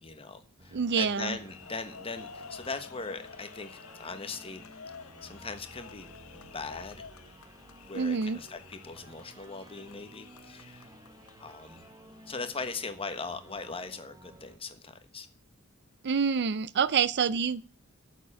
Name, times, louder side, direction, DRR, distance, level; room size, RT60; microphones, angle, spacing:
voice 1, 0.0-4.7 5.2-7.0 7.8-10.9 11.4-11.8 12.3-15.3, left 4 dB, 25° left, 9 dB, 1.3 m, -40 dB
sound 1, 0.6-14.6, right 1 dB, 15° right, 1.0 m, -54 dB
voice 2, 0.7-1.4 7.9-8.4 16.0-17.7, right 6 dB, 50° right, 18 dB, 0.5 m, -27 dB
sound 2, 1.3-12.3, left 5 dB, 70° left, 1.0 m, -50 dB
9.0 x 7.4 x 8.9 m, 0.41 s
head